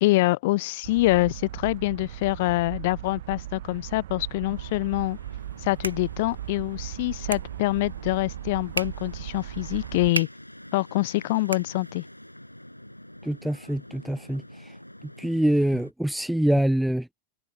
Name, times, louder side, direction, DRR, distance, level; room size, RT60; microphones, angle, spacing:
voice 1, 0.0-5.2 5.6-10.3 10.7-12.0, left 20 dB, 50° left, 0.7 m, -25 dB
sound 1, 0.8-10.1, right 13 dB, 55° right, 1.2 m, -38 dB
sound 2, 4.4-15.9, left 1 dB, 90° left, 6.7 m, -47 dB
sound 3, 5.3-12.3, right 4 dB, 75° right, 1.7 m, -39 dB
voice 2, 13.2-14.7 15.2-17.1, right 1 dB, ahead, 0.4 m, -25 dB
figure-of-eight pair, 90°, 0 cm